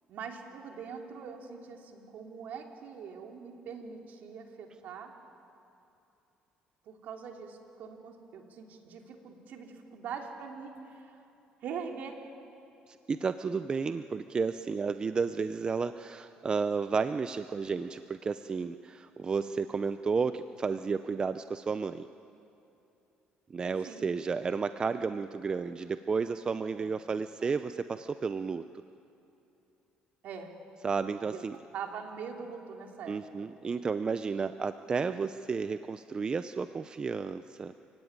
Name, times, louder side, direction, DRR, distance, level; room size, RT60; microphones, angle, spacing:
voice 1, 0.1-5.1 6.8-11.2 11.6-12.2 23.8-24.0 26.7-26.9 27.4-27.5 30.2-30.5 31.2-31.4 31.7-33.5, right 6 dB, 65° right, 2 dB, 3.2 m, -43 dB
voice 2, 12.9-22.1 23.5-28.6 30.8-31.6 33.1-37.8, right 5 dB, 30° right, 11 dB, 0.6 m, -32 dB
28.0 x 17.0 x 9.7 m, 2.9 s
cardioid pair, 115°, 3 cm